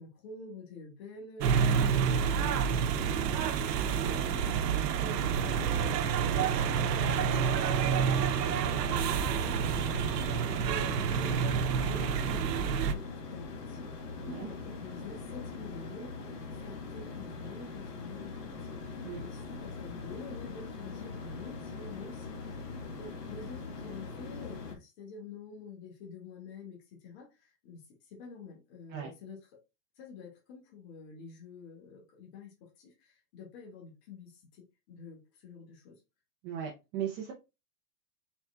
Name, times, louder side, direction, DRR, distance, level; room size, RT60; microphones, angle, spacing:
voice 1, 0.0-29.4 30.0-36.0, left 4 dB, 40° left, 1.8 m, -48 dB
sound 1, 1.4-12.9, right 7 dB, 90° right, 0.9 m, -28 dB
sound 2, 7.8-24.8, left 4 dB, 80° left, 1.7 m, -42 dB
voice 2, 36.4-37.3, right 9 dB, 25° right, 0.7 m, -37 dB
4.6 x 4.2 x 2.4 m
supercardioid pair, 160°, 47 cm